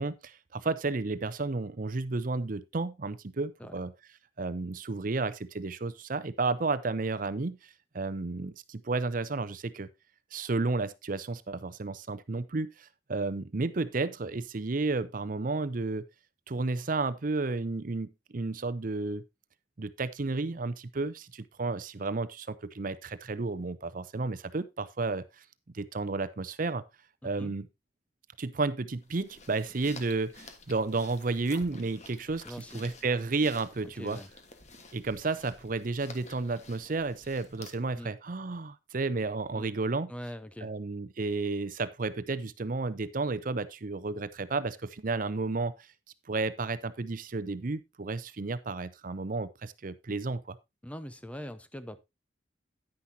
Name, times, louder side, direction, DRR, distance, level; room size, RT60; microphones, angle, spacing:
voice 1, 0.0-3.9 4.4-9.9 10.3-16.0 16.5-19.2 19.8-25.4 25.7-26.8 27.2-27.7 28.4-32.4 32.7-34.2 34.9-40.1 40.6-45.7 46.3-50.6, right 3 dB, 45° right, 0.6 m, -32 dB
voice 2, 27.2-27.5 32.4-32.9 34.0-34.3 37.9-38.2 39.6-39.7 40.1-40.7 50.8-52.0, equal, 5° left, 0.7 m, -42 dB
sound 1, 29.0-38.0, left 3 dB, 40° left, 1.4 m, -51 dB
10.0 x 9.7 x 2.8 m
head